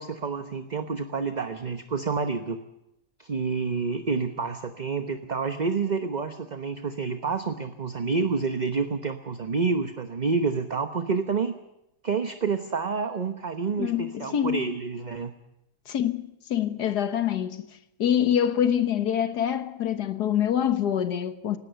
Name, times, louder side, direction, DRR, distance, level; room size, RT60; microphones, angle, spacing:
voice 1, 0.0-2.6 3.2-11.5 12.0-15.3, right 4 dB, 30° right, 1.0 m, -28 dB
voice 2, 13.8-14.7 15.9-17.7 18.0-21.6, left 9 dB, 80° left, 1.8 m, -25 dB
18.5 x 18.0 x 8.0 m
omnidirectional pair, 1.7 m